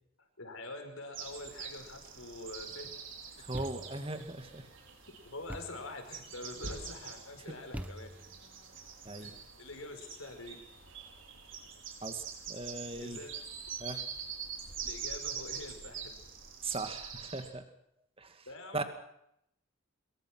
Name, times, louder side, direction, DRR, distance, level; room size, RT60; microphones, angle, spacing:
voice 1, 0.4-2.9 3.4-3.5 5.2-8.1 9.2-10.6 13.0-13.3 14.8-16.2 18.5-18.8, left 2 dB, 75° left, 6 dB, 5.4 m, -45 dB
sound 1, 1.1-17.5, right 6 dB, 60° right, 5.3 m, -45 dB
voice 2, 3.4-4.7 7.5-7.6 9.1-9.4 12.0-13.2 13.8-14.0 16.6-17.6 18.2-18.5 18.7-18.8, right 2 dB, 25° right, 7 dB, 2.2 m, -39 dB
Thump thud, 3.5-4.1 5.5-5.9 7.7-8.4, equal, 5° right, 1.1 m, -43 dB
24.0 x 22.5 x 6.3 m, 0.76 s
head